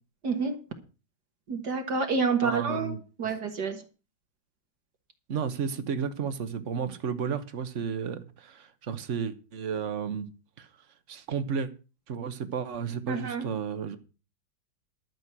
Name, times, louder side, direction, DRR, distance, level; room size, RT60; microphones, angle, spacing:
voice 1, 0.2-0.6 1.5-3.8 13.1-13.5, right 5 dB, 60° right, 2.1 m, -28 dB
voice 2, 2.4-3.0 5.3-10.3 10.6-10.7 11.1-11.7 12.1-14.0, right 6 dB, 45° right, 1.3 m, -32 dB
12.5 x 6.4 x 7.5 m
omnidirectional pair, 2.1 m